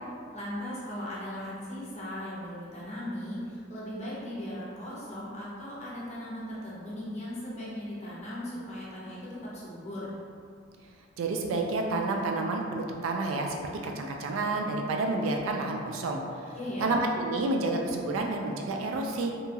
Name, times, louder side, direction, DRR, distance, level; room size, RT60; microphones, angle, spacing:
voice 1, 0.3-10.1 16.5-17.0, left 1 dB, 35° left, -7 dB, 0.7 m, -38 dB
voice 2, 11.2-13.6 13.8-16.2 16.8-19.3, right 2 dB, 80° right, 2 dB, 0.3 m, -29 dB
2.8 x 2.3 x 2.7 m, 2.3 s
head